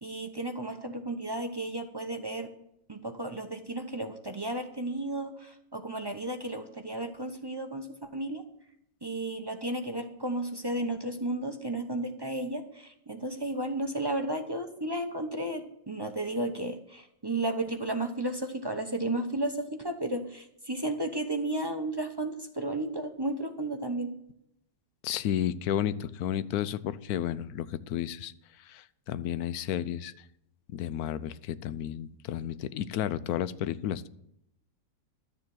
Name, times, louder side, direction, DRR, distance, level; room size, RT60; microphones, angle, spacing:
voice 1, 0.0-2.5 2.9-8.4 9.0-24.1, right 1 dB, 20° right, 5 dB, 0.7 m, -33 dB
voice 2, 25.0-28.3 28.6-30.2 30.7-34.1, left 10 dB, 70° left, 16 dB, 1.1 m, -32 dB
12.5 x 7.0 x 7.7 m, 0.78 s
omnidirectional pair, 1.8 m